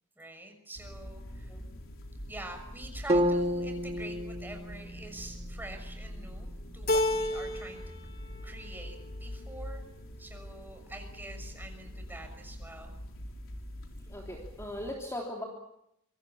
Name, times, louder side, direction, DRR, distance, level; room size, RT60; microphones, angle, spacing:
voice 1, 0.2-1.5 2.3-7.8 8.4-9.8 10.2-13.0, right 1 dB, 10° right, 5 dB, 6.3 m, -46 dB
sound 1, 0.8-14.9, equal, 60° left, 4.2 m, -44 dB
sound 2, 3.1-7.2, equal, 25° right, 2.1 m, -32 dB
Keyboard (musical), 6.9-8.0 8.3-9.0, left 1 dB, 40° left, 2.5 m, -30 dB
voice 2, 14.1-15.4, left 1 dB, 15° left, -1 dB, 3.4 m, -39 dB
26.5 x 25.5 x 7.2 m, 0.79 s
head